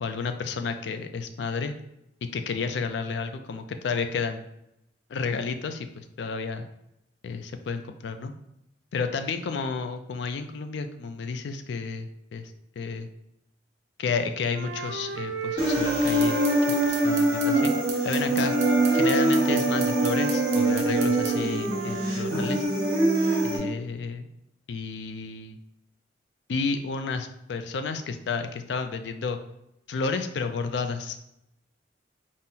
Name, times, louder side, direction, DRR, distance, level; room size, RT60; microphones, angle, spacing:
voice 1, 0.0-1.8 2.3-4.5 5.1-6.7 7.2-8.3 8.9-13.1 14.0-17.7 18.0-18.5 18.9-22.7 23.4-24.3 24.7-25.6 26.5-29.4 29.9-31.2, left 4 dB, 75° left, 8 dB, 0.4 m, -31 dB
Wind instrument woodwind instrument, 14.5-17.9 18.4-22.1, right 3 dB, 90° right, 0.5 m, -34 dB
Human voice, 15.6-23.6, right 1 dB, 20° right, 1.2 m, -24 dB
sound 1, 16.1-21.4, right 5 dB, 40° right, 0.6 m, -37 dB
4.1 x 2.0 x 3.7 m, 0.82 s
head